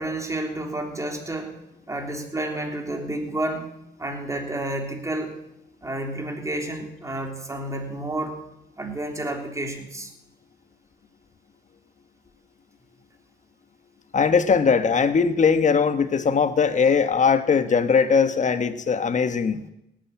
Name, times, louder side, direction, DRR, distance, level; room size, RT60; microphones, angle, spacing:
voice 1, 0.0-1.6 1.9-3.7 4.0-5.4 5.8-8.4 8.8-10.1, right 1 dB, 15° right, 3 dB, 3.3 m, -30 dB
voice 2, 14.1-19.6, left 5 dB, 40° left, 10 dB, 1.3 m, -20 dB
17.5 x 8.9 x 8.6 m, 0.83 s
cardioid pair, 90°, 20 cm